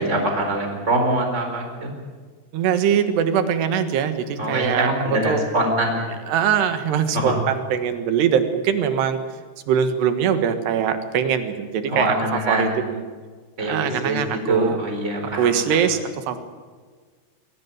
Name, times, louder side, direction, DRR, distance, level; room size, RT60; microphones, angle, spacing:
voice 1, 0.0-1.9 4.4-6.1 7.1-7.3 11.9-12.7 13.6-14.2 14.5-15.8, right 1 dB, 15° right, 3 dB, 4.4 m, -23 dB
voice 2, 2.5-5.4 6.3-9.2 9.7-13.0 13.6-14.8 15.3-16.4, right 8 dB, 80° right, 9 dB, 3.7 m, -22 dB
23.0 x 17.5 x 9.5 m, 1.5 s
omnidirectional pair, 4.7 m